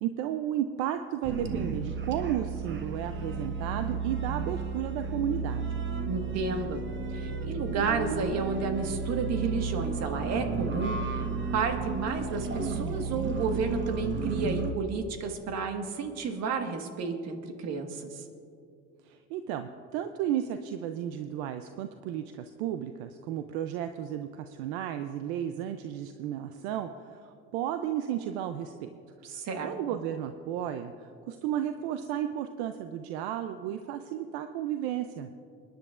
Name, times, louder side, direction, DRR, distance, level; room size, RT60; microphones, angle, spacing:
voice 1, 0.0-5.7 19.0-28.9 29.6-35.3, right 10 dB, 80° right, 9 dB, 0.6 m, -33 dB
sound 1, 1.2-14.7, right 4 dB, 40° right, 1.1 m, -33 dB
voice 2, 6.1-6.8 7.1-18.2 29.2-29.7, right 4 dB, 55° right, 5 dB, 1.6 m, -32 dB
25.5 x 10.5 x 2.5 m, 2.5 s
supercardioid pair, 90°, 31 cm